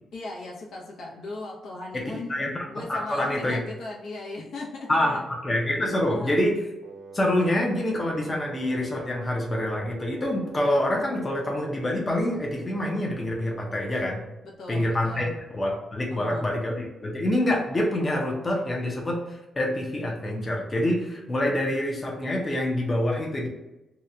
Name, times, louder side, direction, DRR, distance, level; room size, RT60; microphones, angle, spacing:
voice 1, 0.1-2.3 2.7-5.2 6.1-6.4 14.4-15.4 16.1-16.5, left 2 dB, 70° left, -2 dB, 0.8 m, -37 dB
voice 2, 1.9-3.6 4.9-6.6 7.1-14.2 14.7-15.3 15.5-23.5, left 1 dB, 25° left, -2 dB, 0.6 m, -26 dB
Wind instrument woodwind instrument, 6.8-14.4, right 5 dB, 80° right, 0.4 m, -44 dB
2.8 x 2.2 x 3.7 m, 0.97 s
cardioid pair, 135°, 0 cm